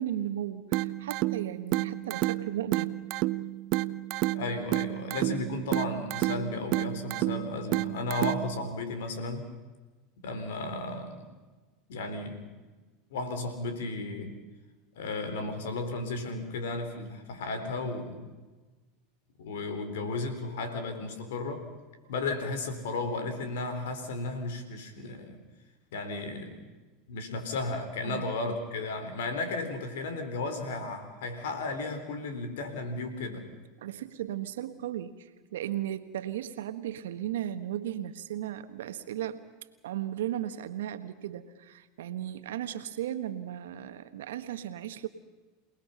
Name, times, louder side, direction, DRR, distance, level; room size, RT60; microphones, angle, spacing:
voice 1, 0.0-2.9 28.0-28.6 33.8-39.4 39.8-45.1, right 11 dB, 80° right, 10 dB, 1.4 m, -36 dB
sound 1, 0.7-8.7, right 17 dB, 55° right, 0.6 m, -31 dB
voice 2, 4.3-9.5 10.2-11.2 11.9-12.4 13.1-14.4 15.0-18.3 19.4-21.6 22.1-25.4 25.9-26.6 27.1-33.5, left 3 dB, 75° left, 8 dB, 3.9 m, -34 dB
28.0 x 19.5 x 5.7 m, 1.3 s
hypercardioid pair, 95°, 0 cm